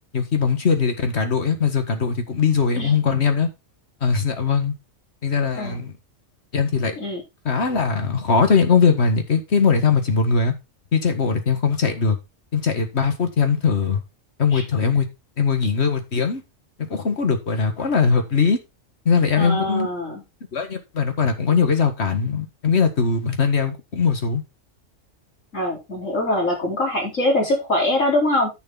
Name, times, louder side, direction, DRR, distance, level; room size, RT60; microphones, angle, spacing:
voice 1, 0.1-3.5 4.0-4.7 5.2-5.9 6.5-7.0 7.5-10.5 10.9-12.2 12.5-14.0 14.4-15.1 15.4-16.4 16.8-18.6 19.1-19.9 20.5-24.4, left 5 dB, 55° left, 2.0 m, -20 dB
voice 2, 19.4-20.2 25.5-28.5, left 1 dB, 75° left, 4.4 m, -23 dB
10.5 x 6.7 x 3.8 m
omnidirectional pair, 1.3 m